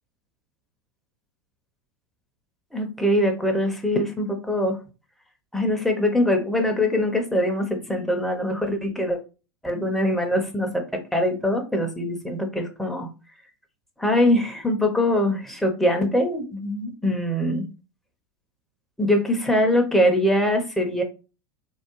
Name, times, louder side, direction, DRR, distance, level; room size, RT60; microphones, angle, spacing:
voice 1, 2.7-4.8 5.5-9.2 9.6-13.1 14.0-17.7 19.0-21.0, left 1 dB, ahead, 0.8 m, -23 dB
3.5 x 2.2 x 3.0 m
figure-of-eight pair, 90°, 12 cm